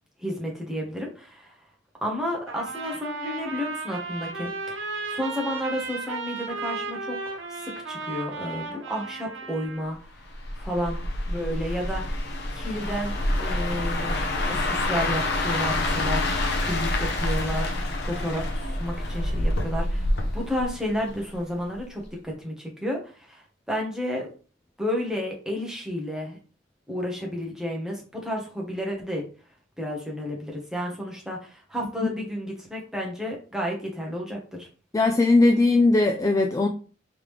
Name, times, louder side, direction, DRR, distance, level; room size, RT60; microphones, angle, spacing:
voice 1, 0.2-1.6 2.0-10.1 10.6-12.2 12.5-14.2 14.5-24.3 24.8-26.4 26.9-29.2 29.8-34.7, equal, 5° right, -1 dB, 1.0 m, -32 dB
Trumpet, 2.5-9.9, right 3 dB, 85° right, 1.1 m, -35 dB
sound 1, 10.3-21.4 21.7-22.0, left 1 dB, 60° left, 0.7 m, -27 dB
voice 2, 34.9-36.7, left 2 dB, 15° left, 3 dB, 0.3 m, -19 dB
3.6 x 3.3 x 3.1 m, 0.37 s
head